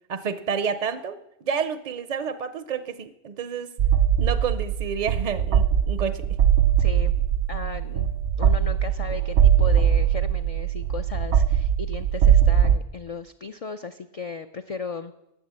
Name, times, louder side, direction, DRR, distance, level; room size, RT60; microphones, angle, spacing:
voice 1, 0.1-1.2 1.4-3.7 4.2-6.2, right 6 dB, 50° right, 12 dB, 0.5 m, -29 dB
sound 1, 3.8-12.8, right 9 dB, 80° right, 0.9 m, -21 dB
voice 2, 6.8-7.1 7.5-8.1 8.4-15.1, left 5 dB, 55° left, 8 dB, 0.4 m, -36 dB
11.0 x 7.6 x 7.4 m, 0.87 s
omnidirectional pair, 1.1 m